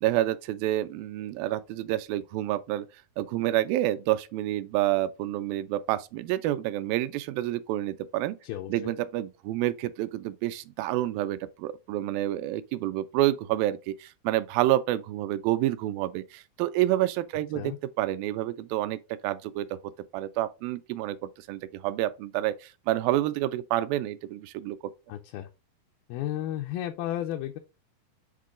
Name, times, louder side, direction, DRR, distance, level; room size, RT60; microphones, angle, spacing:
voice 1, 0.0-2.9 3.2-8.4 8.7-19.7 20.1-21.2 21.5-24.8, right 14 dB, 80° right, 2.2 m, -28 dB
voice 2, 8.4-8.9 17.6-17.8 25.1-25.5 26.1-27.6, left 12 dB, 80° left, 2.4 m, -33 dB
7.5 x 3.8 x 3.6 m
omnidirectional pair, 4.3 m